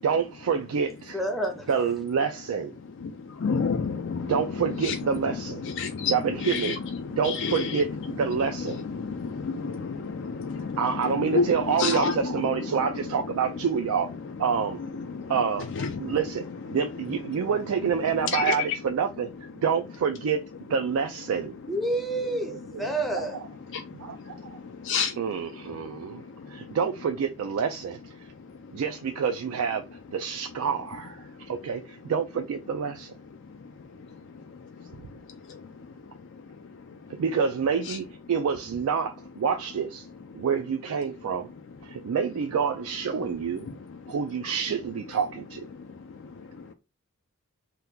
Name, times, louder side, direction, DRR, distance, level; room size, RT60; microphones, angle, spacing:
voice 1, 0.0-1.2 1.7-2.7 4.3-5.6 6.1-6.7 7.2-8.8 10.8-14.1 14.4-14.8 15.3-15.7 16.0-19.3 19.6-20.4 20.7-21.6 22.2-22.6 23.1-23.3 25.2-26.2 26.5-28.3 28.7-29.8 30.1-33.1 37.2-40.1 40.3-41.5 41.8-43.7 44.1-45.7, right 6 dB, 75° right, 0.3 m, -27 dB
voice 2, 1.1-1.7 21.7-23.4, right 1 dB, ahead, 0.5 m, -29 dB
voice 3, 3.4-6.8 7.2-7.8 8.3-8.4 8.6-12.8 14.9-15.0 15.7-16.0 18.3-18.6 24.9-25.1 37.9-38.0, left 5 dB, 55° left, 0.4 m, -29 dB
2.8 x 2.3 x 3.5 m
head